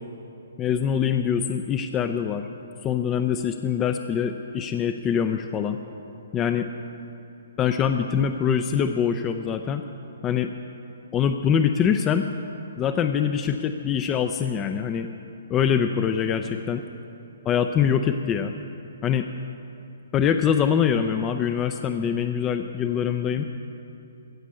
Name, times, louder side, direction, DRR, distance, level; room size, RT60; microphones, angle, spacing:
voice 1, 0.6-2.5 2.8-5.8 6.3-6.7 7.6-9.8 10.2-10.5 11.1-12.3 12.8-15.1 15.5-16.8 17.5-18.5 19.0-19.3 20.1-23.5, left 7 dB, 20° left, 7 dB, 0.4 m, -24 dB
16.0 x 5.3 x 8.2 m, 2.8 s
hypercardioid pair, 135°, 0 cm